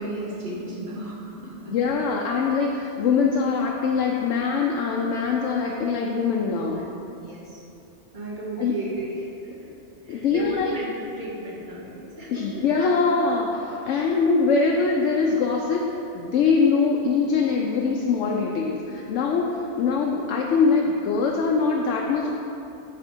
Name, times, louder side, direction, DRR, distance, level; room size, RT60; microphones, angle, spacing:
voice 1, 0.0-1.7 6.6-6.8 7.2-7.6 8.1-9.7 10.0-12.9 13.8-14.2, right 1 dB, 45° right, -5 dB, 1.3 m, -35 dB
voice 2, 1.7-6.8 8.6-8.8 10.1-10.7 12.3-15.8 16.1-22.3, left 5 dB, 80° left, 0 dB, 0.9 m, -23 dB
9.8 x 3.4 x 4.4 m, 2.8 s
omnidirectional pair, 1.2 m